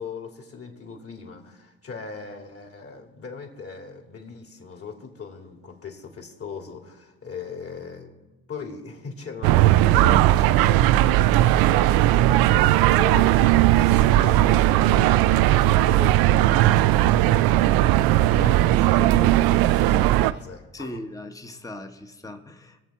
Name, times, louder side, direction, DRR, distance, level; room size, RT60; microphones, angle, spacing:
voice 1, 0.0-12.5 12.9-18.0 18.4-19.4 19.8-20.9, left 5 dB, 40° left, 2 dB, 3.0 m, -39 dB
sound 1, 9.4-20.3, right 14 dB, 75° right, 0.5 m, -18 dB
voice 2, 12.5-12.8 18.3-18.6 20.7-22.8, left 1 dB, 10° left, 6 dB, 1.2 m, -38 dB
sound 2, 13.9-20.4, left 1 dB, 90° left, 3.7 m, -47 dB
21.5 x 7.3 x 4.3 m, 1.1 s
supercardioid pair, 65°, 36 cm